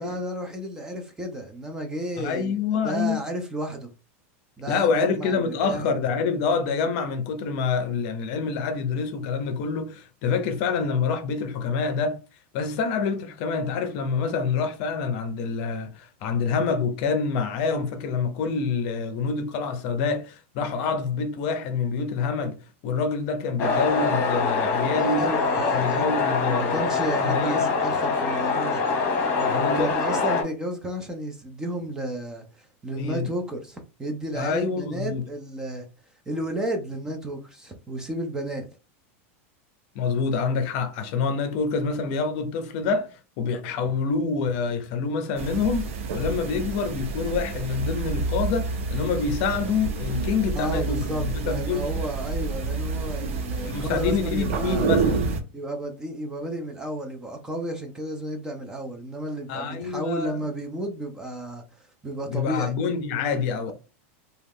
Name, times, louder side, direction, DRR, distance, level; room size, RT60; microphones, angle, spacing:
voice 1, 0.0-2.5 2.8-3.9 4.6-5.9 25.0-29.0 29.4-35.9 36.3-38.7 50.5-54.9 55.5-62.8, right 1 dB, 10° right, 0.4 m, -32 dB
voice 2, 2.2-3.2 4.7-12.2 12.5-22.6 22.8-25.3 25.7-27.6 29.5-29.9 33.0-33.3 34.3-35.2 39.9-43.1 43.4-45.9 46.1-51.8 53.2-53.4 53.6-55.2 59.5-60.4 62.3-63.7, left 5 dB, 45° left, 0.6 m, -27 dB
sound 1, 23.6-30.4, left 4 dB, 30° left, 1.1 m, -24 dB
sound 2, 45.4-55.4, right 4 dB, 80° right, 0.7 m, -28 dB
3.1 x 2.3 x 3.5 m
supercardioid pair, 165°, 7 cm